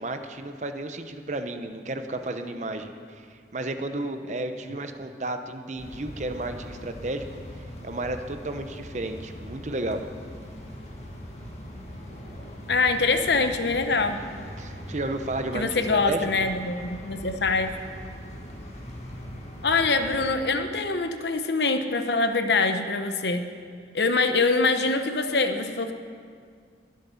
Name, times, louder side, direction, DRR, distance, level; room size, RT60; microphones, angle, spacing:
voice 1, 0.0-3.3 3.5-7.4 7.8-10.0 14.6-16.3, right 2 dB, 40° right, 8 dB, 0.8 m, -32 dB
sound 1, 5.8-20.3, equal, 40° left, 1.9 m, -41 dB
voice 2, 12.7-14.2 15.5-17.7 19.6-23.4 23.9-25.9, left 3 dB, 70° left, 7 dB, 0.9 m, -24 dB
22.0 x 7.7 x 5.7 m, 2.1 s
head